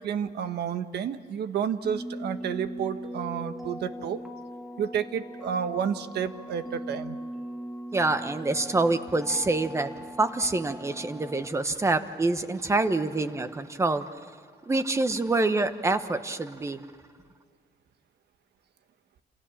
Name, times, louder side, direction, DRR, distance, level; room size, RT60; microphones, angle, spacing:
voice 1, 0.0-4.2 4.8-7.2, right 8 dB, 75° right, 9 dB, 1.5 m, -30 dB
sound 1, 1.8-11.5, equal, ahead, 1.9 m, -40 dB
voice 2, 7.9-14.0 14.7-16.9, right 2 dB, 15° right, 10 dB, 1.2 m, -26 dB
29.0 x 27.5 x 7.3 m, 2.1 s
cardioid pair, 165°, 17 cm